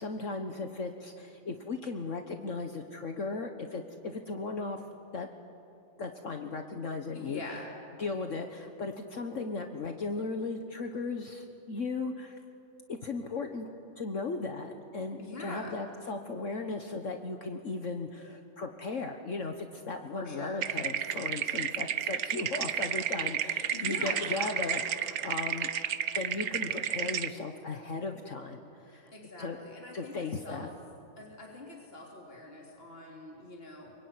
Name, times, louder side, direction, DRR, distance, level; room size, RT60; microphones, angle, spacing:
voice 1, 0.0-4.8 5.1-5.3 6.0-7.4 8.0-12.4 12.9-13.7 14.0-25.7 26.1-29.1 29.4-29.6 29.9-30.7, left 3 dB, 60° left, 5 dB, 1.6 m, -36 dB
voice 2, 7.1-7.7 15.2-15.8 20.1-20.6 23.7-24.8 29.1-30.7 31.2-33.9, left 2 dB, 40° left, -1 dB, 3.4 m, -43 dB
sound 1, 20.6-27.3, right 9 dB, 80° right, 1.3 m, -32 dB
26.5 x 23.5 x 9.6 m, 2.6 s
omnidirectional pair, 1.5 m